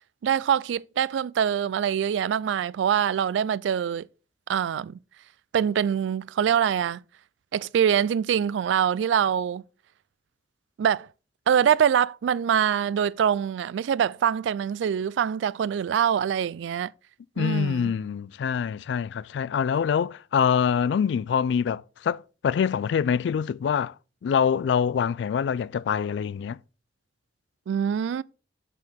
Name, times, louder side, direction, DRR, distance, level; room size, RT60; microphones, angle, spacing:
voice 1, 0.2-4.1 4.5-5.0 5.5-7.0 7.5-9.6 10.8-11.1 11.5-16.9 17.4-17.9 27.7-28.2, right 8 dB, 90° right, 0.3 m, -24 dB
voice 2, 17.4-23.9 24.2-26.6, left 7 dB, 75° left, 0.3 m, -25 dB
6.7 x 6.1 x 3.5 m
head